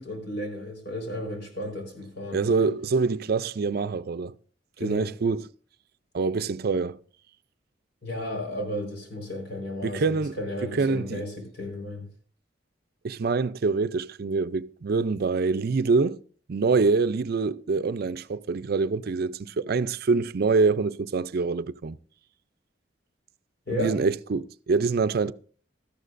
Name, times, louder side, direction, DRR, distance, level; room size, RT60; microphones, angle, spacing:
voice 1, 0.0-2.7 4.8-5.1 8.0-12.1 23.7-24.0, left 1 dB, 65° left, 4.5 m, -34 dB
voice 2, 2.3-4.3 4.8-5.5 6.1-7.0 9.8-10.4 10.7-11.2 13.0-16.2 16.5-22.0 23.7-25.3, right 4 dB, 55° right, 0.5 m, -25 dB
17.5 x 13.5 x 2.6 m
head